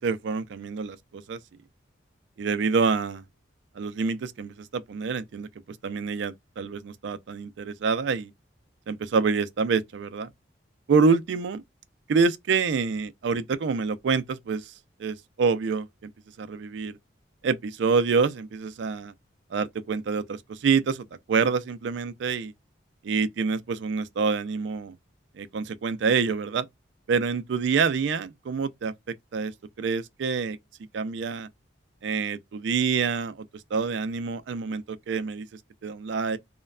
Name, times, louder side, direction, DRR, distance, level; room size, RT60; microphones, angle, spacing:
voice 1, 0.0-1.4 2.4-3.2 3.8-8.3 8.9-10.3 10.9-11.6 12.1-14.7 15.0-16.1 16.4-17.0 17.4-19.1 19.5-22.5 23.0-25.0 25.4-26.7 27.1-30.6 30.9-31.5 32.0-35.5 35.8-36.4, right 5 dB, 65° right, 0.3 m, -27 dB
3.0 x 2.1 x 2.3 m
head